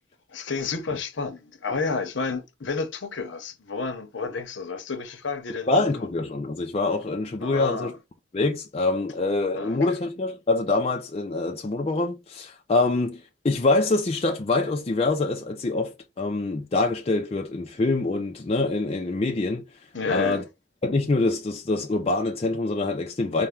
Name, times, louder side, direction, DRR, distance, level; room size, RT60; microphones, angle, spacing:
voice 1, 0.3-5.9 7.4-8.0 9.5-9.8 19.9-20.5, left 4 dB, 70° left, 0.8 m, -30 dB
voice 2, 5.7-7.9 8.3-19.6 20.1-20.4 20.8-23.5, left 2 dB, 30° left, 0.4 m, -25 dB
4.3 x 2.2 x 3.6 m
head